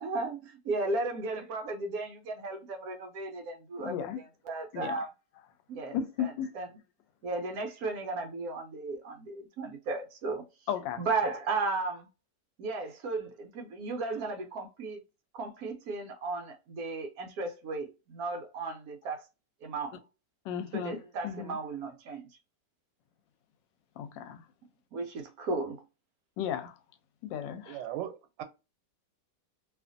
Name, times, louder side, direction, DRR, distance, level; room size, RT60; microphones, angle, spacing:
voice 1, 0.0-3.9 4.5-5.1 5.7-6.7 7.2-10.4 11.0-12.1 12.6-15.0 15.3-19.3 19.6-20.0 20.7-22.3 24.9-25.8, right 3 dB, 70° right, 0.9 m, -35 dB
voice 2, 3.8-4.2 4.7-5.0 5.9-6.5 10.7-11.0 20.4-21.6 24.0-24.5 26.4-26.8 27.2-27.8, left 9 dB, 85° left, 1.3 m, -35 dB
voice 3, 27.7-28.4, right 11 dB, 90° right, 1.3 m, -38 dB
2.8 x 2.5 x 2.4 m
omnidirectional pair, 1.9 m